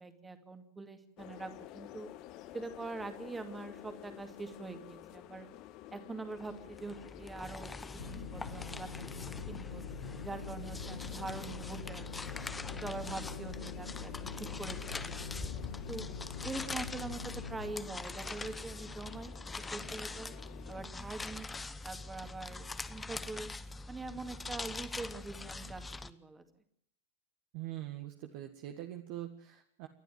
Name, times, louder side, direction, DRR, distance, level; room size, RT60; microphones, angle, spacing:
voice 1, 0.0-2.1 2.5-5.5 5.9-9.8 10.2-12.3 12.7-14.3 14.6-15.3 15.9-16.1 16.4-20.3 20.7-21.5 21.8-23.5 23.9-26.4, right 3 dB, 10° right, 7 dB, 2.3 m, -44 dB
sound 1, 1.2-20.8, left 13 dB, 40° left, 1.3 m, -51 dB
sound 2, 6.4-26.1, left 3 dB, 10° left, 1.0 m, -43 dB
sound 3, 8.0-17.7, left 5 dB, 70° left, 0.8 m, -45 dB
voice 2, 27.5-29.9, right 13 dB, 45° right, 5 dB, 1.6 m, -43 dB
29.0 x 12.0 x 7.7 m, 0.70 s
figure-of-eight pair, 90°, 0 cm